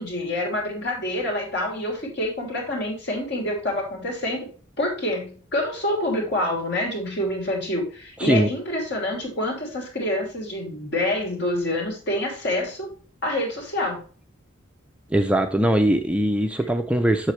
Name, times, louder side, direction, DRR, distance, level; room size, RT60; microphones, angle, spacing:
voice 1, 0.0-4.5 4.8-12.9 13.2-14.0, left 1 dB, 55° left, 1 dB, 2.9 m, -27 dB
voice 2, 8.2-8.5 15.1-17.3, right 1 dB, 5° right, 6 dB, 0.4 m, -21 dB
7.5 x 6.7 x 3.2 m, 0.40 s
head